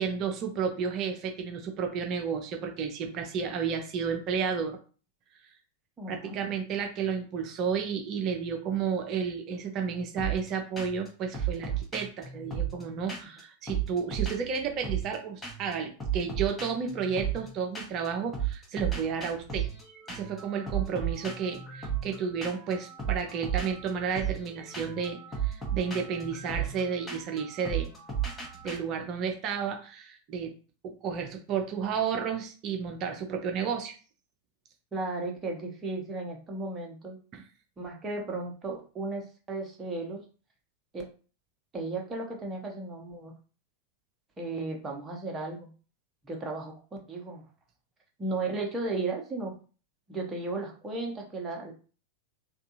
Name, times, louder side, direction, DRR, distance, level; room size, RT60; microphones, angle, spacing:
voice 1, 0.0-4.8 5.3-5.4 6.1-19.7 20.1-27.9 28.6-30.5 30.8-34.0 37.3-37.4, right 6 dB, 35° right, 4 dB, 0.5 m, -32 dB
voice 2, 6.0-6.4 34.9-37.2 37.8-40.2 40.9-41.0 41.7-43.3 44.4-45.7 46.2-46.7 47.1-47.4 48.2-49.5 50.1-51.7, right 3 dB, 20° right, 1 dB, 0.9 m, -35 dB
sound 1, 10.2-10.5 10.8-11.1 11.3-13.4 13.7-15.2 15.4-15.7 16.0-18.1 18.3-28.8, right 8 dB, 10° left, 1.0 m, -34 dB
3.4 x 2.4 x 2.8 m, 0.37 s
figure-of-eight pair, 90°, 0 cm